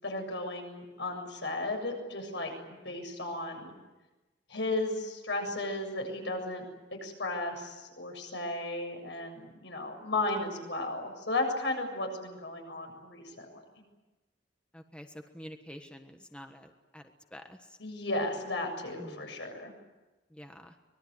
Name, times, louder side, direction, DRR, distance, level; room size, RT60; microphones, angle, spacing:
voice 1, 0.0-3.7 4.5-6.6 7.0-13.6 17.8-19.7, left 2 dB, 75° left, 3 dB, 7.4 m, -34 dB
voice 2, 2.6-3.0 14.7-17.0 17.3-17.8 19.0-19.3 20.3-20.7, equal, 5° left, 5 dB, 1.4 m, -48 dB
24.5 x 21.5 x 9.7 m, 1.1 s
head